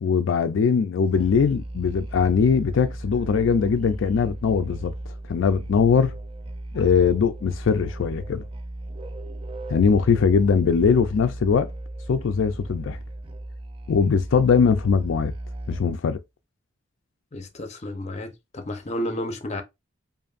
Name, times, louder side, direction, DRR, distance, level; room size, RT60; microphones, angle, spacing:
voice 1, 0.0-4.9 5.3-6.2 6.7-8.4 9.7-11.7 12.1-13.0 13.9-15.3 15.7-16.2, left 6 dB, 75° left, 0.4 m, -21 dB
Musical instrument, 1.0-16.1, right 1 dB, 30° right, 0.3 m, -36 dB
voice 2, 17.3-19.6, left 1 dB, 35° left, 0.6 m, -31 dB
5.0 x 2.6 x 2.4 m
head